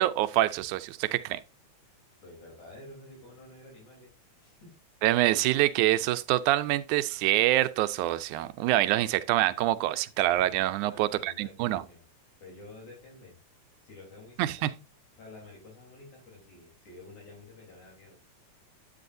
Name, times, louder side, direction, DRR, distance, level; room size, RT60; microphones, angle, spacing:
voice 1, 0.0-1.4 5.0-11.8 14.4-14.7, right 15 dB, 90° right, 2.1 m, -26 dB
voice 2, 2.2-4.1 4.4-4.8 5.4-5.5 10.8-12.0 12.4-13.4 13.8-14.8 15.2-18.2, left 2 dB, 70° left, 5.0 m, -50 dB
9.9 x 8.6 x 2.6 m
omnidirectional pair, 3.4 m